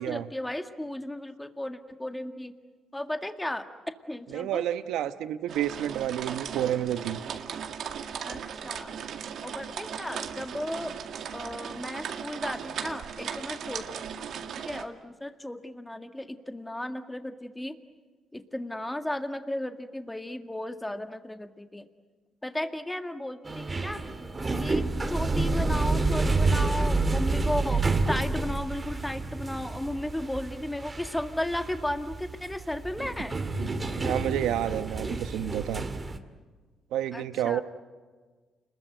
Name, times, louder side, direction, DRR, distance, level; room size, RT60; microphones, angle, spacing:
voice 1, 0.0-2.5 2.9-3.7 4.1-4.7 8.2-9.0 9.4-10.9 11.3-14.2 14.7-17.8 18.3-21.9 22.4-24.0 24.6-33.4 37.1-37.6, left 1 dB, 10° left, 7 dB, 1.9 m, -35 dB
voice 2, 4.3-7.2 33.5-35.9 36.9-37.6, right 11 dB, 85° right, 11 dB, 1.0 m, -30 dB
sound 1, 5.5-14.8, right 7 dB, 70° right, 2.0 m, -37 dB
sound 2, 23.5-36.2, right 3 dB, 25° right, 2.2 m, -29 dB
30.0 x 21.0 x 9.2 m, 1.4 s
cardioid pair, 90°, 0 cm